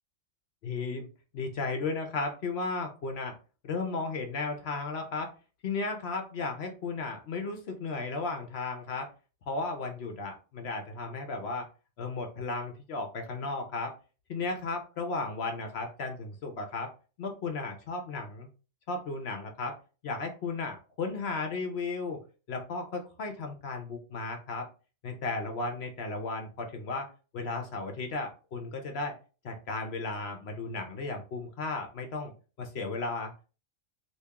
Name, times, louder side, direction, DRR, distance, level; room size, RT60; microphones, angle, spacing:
voice 1, 0.6-1.1 1.3-3.3 3.6-5.3 5.6-9.1 9.5-11.7 12.0-13.9 14.3-16.9 17.2-18.5 18.9-19.8 20.0-22.2 22.5-24.7 25.0-27.1 27.3-29.1 29.4-32.3 32.6-33.5, left 3 dB, 60° left, 4 dB, 0.9 m, -34 dB
3.4 x 2.8 x 2.8 m, 0.35 s
omnidirectional pair, 1.3 m